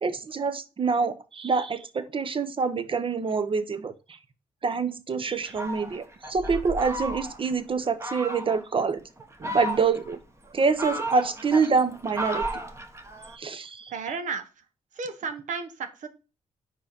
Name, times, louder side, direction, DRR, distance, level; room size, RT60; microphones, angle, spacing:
voice 1, 0.0-3.9 4.6-9.0 9.4-10.2 10.5-12.4 13.3-13.9, right 4 dB, 40° right, 12 dB, 0.9 m, -26 dB
Fowl, 5.4-7.5 8.0-8.6 9.2-10.1 10.6-13.4, right 1 dB, 20° right, 1.4 m, -34 dB
voice 2, 13.9-14.5 14.9-16.1, right 5 dB, 70° right, 8 dB, 1.0 m, -33 dB
4.7 x 4.4 x 5.2 m, 0.32 s
supercardioid pair, 60°, 13 cm